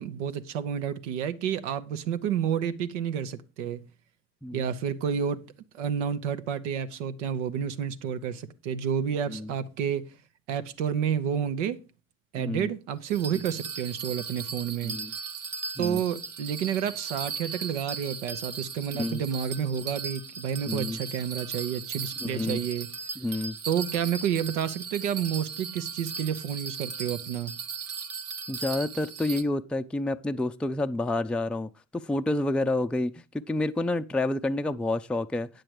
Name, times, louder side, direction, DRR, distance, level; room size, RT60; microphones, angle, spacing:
voice 1, 0.0-3.8 4.5-5.5 5.7-10.1 10.5-11.8 12.3-15.0 15.8-22.9 23.7-27.5, right 8 dB, 80° right, 0.9 m, -30 dB
voice 2, 12.4-12.7 14.8-15.1 15.8-16.0 18.9-19.2 20.7-21.0 22.2-22.6 23.2-23.5 28.5-35.5, left 2 dB, 5° left, 0.4 m, -29 dB
Bell, 13.1-29.4, right 5 dB, 45° right, 1.1 m, -37 dB
9.1 x 7.6 x 4.6 m
hypercardioid pair, 65°, 35 cm